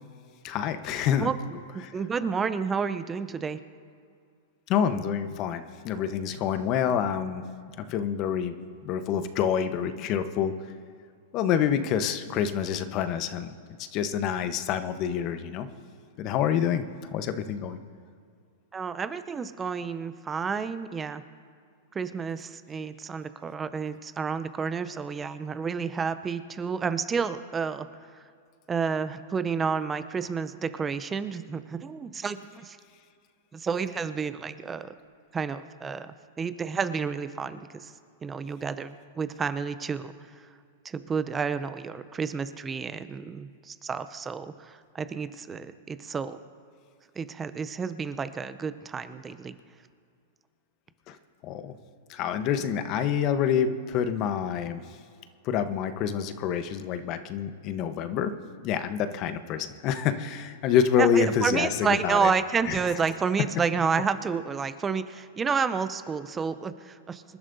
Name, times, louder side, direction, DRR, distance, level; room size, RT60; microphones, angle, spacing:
voice 1, 0.4-1.3 1.7-1.8 2.2-2.3 4.7-7.5 7.8-8.6 8.8-10.5 11.3-13.5 13.8-15.7 16.2-16.8 17.1-17.8 51.1-51.2 51.4-51.7 52.1-54.8 55.4-58.3 58.6-62.3 62.6-63.0 63.5-63.6 64.0-64.1, left 8 dB, 45° left, 10 dB, 1.0 m, -27 dB
voice 2, 1.7-3.6 18.7-21.2 21.9-27.9 28.7-32.8 33.5-34.9 35.3-37.9 38.2-40.1 40.8-46.4 47.2-49.5 61.0-67.2, right 5 dB, 20° right, 12 dB, 0.6 m, -30 dB
26.0 x 12.0 x 2.7 m, 2.3 s
hypercardioid pair, 110°, 0 cm